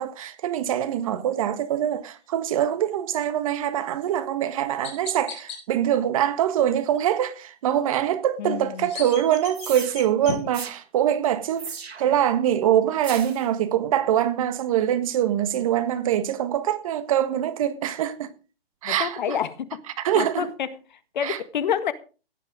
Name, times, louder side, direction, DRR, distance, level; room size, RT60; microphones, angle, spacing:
voice 1, 0.0-18.3 18.8-19.2 20.0-20.5 21.2-21.4, right 10 dB, 35° right, 1.6 m, -24 dB
Chirp tweet, 3.9-4.1 4.8-5.6 8.5-10.4, left 7 dB, 20° left, 4.8 m, -38 dB
voice 2, 8.4-8.9 10.3-10.4 18.8-19.8 20.1-21.9, left 8 dB, 50° left, 1.7 m, -28 dB
sound 1, 9.5-10.0 10.5-10.8 11.6-12.2 13.0-13.4, right 5 dB, 80° right, 2.9 m, -36 dB
17.0 x 11.0 x 5.0 m
hypercardioid pair, 150°, 31 cm